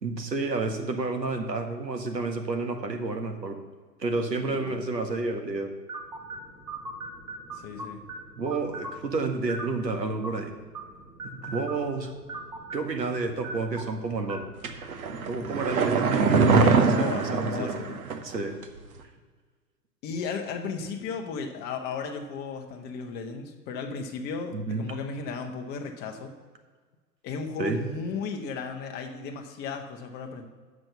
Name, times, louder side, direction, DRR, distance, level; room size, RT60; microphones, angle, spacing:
voice 1, 0.0-3.6 4.0-5.7 8.4-10.5 11.2-12.1 12.7-14.5 15.2-17.8 18.2-18.5 24.5-24.8 27.6-27.8, right 3 dB, 80° right, 4 dB, 1.8 m, -30 dB
voice 2, 4.4-4.9 7.5-8.0 16.5-18.0 20.0-26.3 27.2-30.5, left 5 dB, 20° left, 3 dB, 1.0 m, -35 dB
sound 1, 5.9-15.4, right 2 dB, 10° right, 0.7 m, -41 dB
sound 2, 14.6-18.3 18.6-18.7, right 4 dB, 60° right, 1.2 m, -23 dB
7.6 x 6.1 x 7.9 m, 1.5 s
figure-of-eight pair, 120°, 49 cm